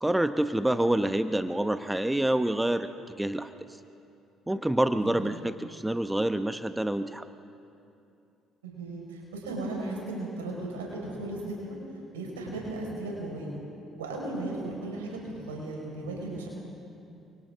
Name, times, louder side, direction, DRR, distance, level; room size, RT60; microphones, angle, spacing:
voice 1, 0.0-2.9 3.2-3.5 4.5-7.3, right 1 dB, 10° right, 10 dB, 0.8 m, -27 dB
voice 2, 5.0-5.4 8.6-11.8 12.1-13.5 14.0-16.5, right 2 dB, 85° right, -2 dB, 4.9 m, -36 dB
29.5 x 24.5 x 3.7 m, 2.7 s
hypercardioid pair, 50°, 0 cm